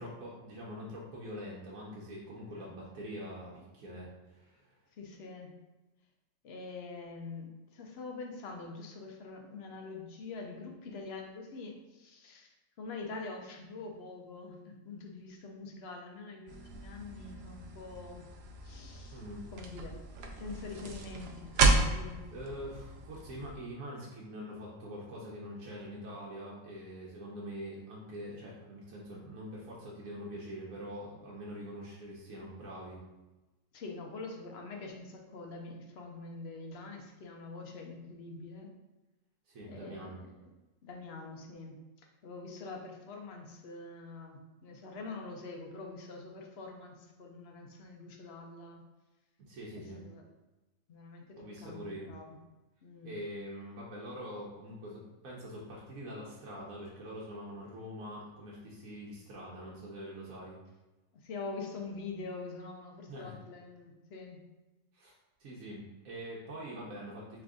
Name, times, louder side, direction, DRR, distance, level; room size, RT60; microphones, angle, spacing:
voice 1, 0.0-4.8 19.1-19.4 22.3-33.0 39.5-40.2 49.5-50.0 51.4-52.1 53.0-60.6 63.1-63.3 64.9-65.1 65.4-67.4, equal, 80° right, -4 dB, 1.3 m, -44 dB
voice 2, 2.4-2.7 5.0-5.5 6.4-18.2 18.6-19.2 19.5-20.0 20.2-22.2 33.7-38.7 39.6-40.3 40.8-48.8 49.7-50.3 50.9-52.4 52.8-53.2 61.2-64.4, left 3 dB, 55° left, 2 dB, 0.8 m, -45 dB
sound 1, 16.5-23.5, right 3 dB, 60° right, 0.7 m, -33 dB
3.8 x 3.3 x 3.6 m, 1.1 s
omnidirectional pair, 1.4 m